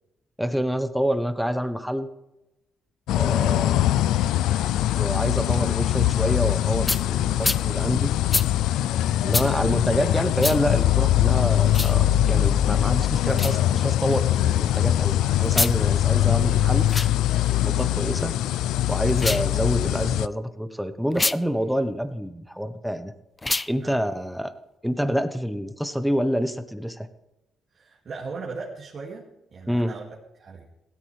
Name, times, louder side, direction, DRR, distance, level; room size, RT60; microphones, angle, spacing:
voice 1, 0.4-2.1 3.2-3.9 5.0-8.1 9.2-16.9 17.6-18.3 18.9-23.1 23.7-24.5 24.8-27.1 29.7-29.9, equal, ahead, 9 dB, 1.1 m, -27 dB
sound 1, 3.1-20.3, left 13 dB, 90° left, 0.3 m, -22 dB
sound 2, 6.9-7.0 7.4-7.6 8.3-8.5 9.3-9.5 10.4-10.6 11.7-11.9 13.3-13.6 15.5-15.8 16.8-17.1 19.1-19.5 21.1-21.4 23.4-23.7, left 2 dB, 20° left, 0.5 m, -26 dB
voice 2, 27.7-30.7, right 4 dB, 50° right, -2 dB, 2.4 m, -38 dB
17.0 x 13.0 x 3.4 m, 0.94 s
cardioid pair, 90°, 0 cm